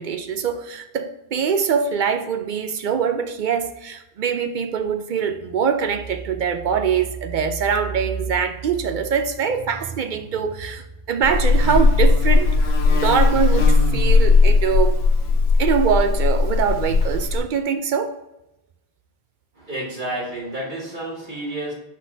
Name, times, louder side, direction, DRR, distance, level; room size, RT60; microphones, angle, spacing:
voice 1, 0.0-12.5 12.9-15.0 15.6-18.2, right 6 dB, 60° right, 0.5 m, -23 dB
Buzz, 11.2-17.4, left 3 dB, 60° left, 1.0 m, -17 dB
voice 2, 19.7-21.7, right 1 dB, 40° right, 2.2 m, -30 dB
6.2 x 6.0 x 2.7 m
omnidirectional pair, 1.3 m